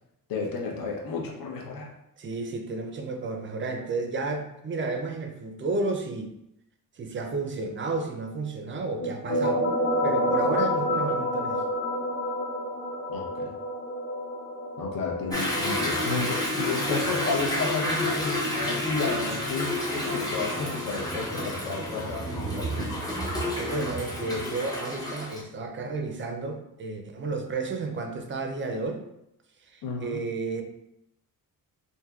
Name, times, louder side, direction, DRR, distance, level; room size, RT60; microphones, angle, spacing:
voice 1, 0.3-1.9 13.1-13.5 14.8-22.9 29.8-30.2, left 4 dB, 70° left, -2 dB, 0.8 m, -32 dB
voice 2, 2.2-6.3 7.0-9.7 10.0-11.6 23.6-29.0 29.7-30.6, right 3 dB, 35° right, 4 dB, 0.4 m, -32 dB
sound 1, 9.0-18.4, equal, 40° left, 1.0 m, -30 dB
Toilet flush / Drip / Trickle dribble, 15.3-25.4, left 1 dB, 10° left, 0.6 m, -30 dB
3.4 x 2.6 x 2.3 m, 0.81 s
cardioid pair, 130°, 36 cm